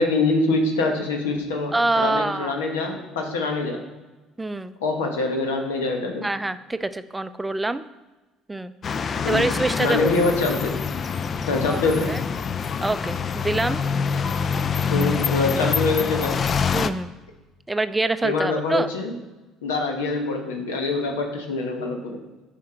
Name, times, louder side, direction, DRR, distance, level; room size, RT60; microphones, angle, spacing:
voice 1, 0.0-3.8 4.8-6.3 9.2-9.5 9.8-10.8 11.5-12.1 14.9-16.4 18.2-19.2 19.6-22.2, left 3 dB, 85° left, 3 dB, 1.2 m, -24 dB
voice 2, 1.7-2.5 4.4-4.7 6.2-7.8 8.5-8.7 9.3-10.1 11.7-11.8 12.1-12.2 12.8-13.8 15.6-15.7 16.7-17.1 17.7-18.9, right 2 dB, 15° right, 12 dB, 0.4 m, -25 dB
sound 1, 8.8-16.9, left 6 dB, 45° left, 0.4 m, -25 dB
9.5 x 5.1 x 4.4 m, 1.1 s
hypercardioid pair, 65°, 0 cm